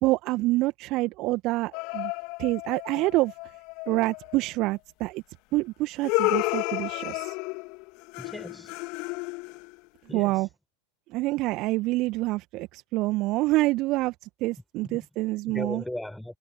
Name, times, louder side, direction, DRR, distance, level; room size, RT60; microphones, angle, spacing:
voice 1, 0.0-2.1 2.4-3.3 3.9-5.2 5.5-7.4 10.1-10.5 11.1-14.1 14.4-15.8, right 20 dB, 40° right, 1.8 m, -27 dB
sound 1, 1.7-4.4 6.0-9.9, left 28 dB, 45° left, 2.8 m, -32 dB
voice 2, 8.2-8.8 10.1-10.4 14.8-15.0 15.5-16.4, left 1 dB, 5° left, 7.7 m, -37 dB
figure-of-eight pair, 90°, 0 cm